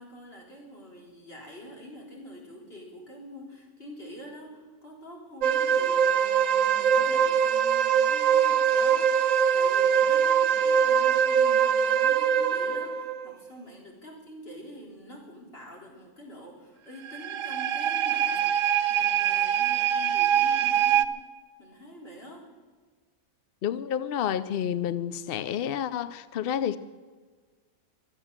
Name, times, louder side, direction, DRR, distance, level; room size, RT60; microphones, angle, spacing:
voice 1, 0.0-21.0 21.6-22.5, equal, 40° left, -2 dB, 4.3 m, -46 dB
sound 1, 5.4-13.3 17.1-21.1, right 8 dB, 65° right, 1.0 m, -23 dB
voice 2, 23.6-26.8, left 9 dB, 65° left, 15 dB, 0.5 m, -29 dB
23.5 x 8.2 x 7.3 m, 1.5 s
omnidirectional pair, 1.6 m